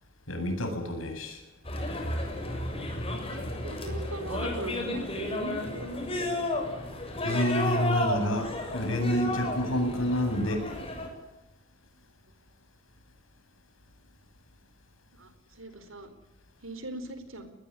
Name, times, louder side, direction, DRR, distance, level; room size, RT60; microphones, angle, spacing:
voice 1, 0.3-1.4 7.2-10.8, equal, 80° left, 5 dB, 7.8 m, -29 dB
sound 1, 1.6-11.1, left 1 dB, 30° left, 6.8 m, -32 dB
voice 2, 3.4-6.5 15.2-15.3 15.6-16.1 16.6-17.5, right 1 dB, 80° right, 10 dB, 4.4 m, -39 dB
21.5 x 20.5 x 9.9 m, 1.0 s
head